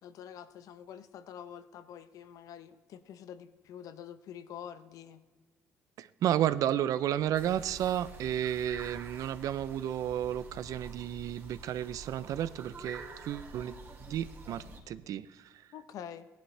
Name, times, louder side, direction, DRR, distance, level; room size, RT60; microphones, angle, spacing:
voice 1, 0.0-5.2 15.7-16.3, left 9 dB, 70° left, 12 dB, 0.8 m, -46 dB
voice 2, 6.0-15.6, right 11 dB, 65° right, 15 dB, 0.5 m, -32 dB
sound 1, 7.3-14.8, right 2 dB, 40° right, 2.3 m, -48 dB
15.5 x 11.5 x 3.3 m, 1.3 s
cardioid pair, 90°, 6 cm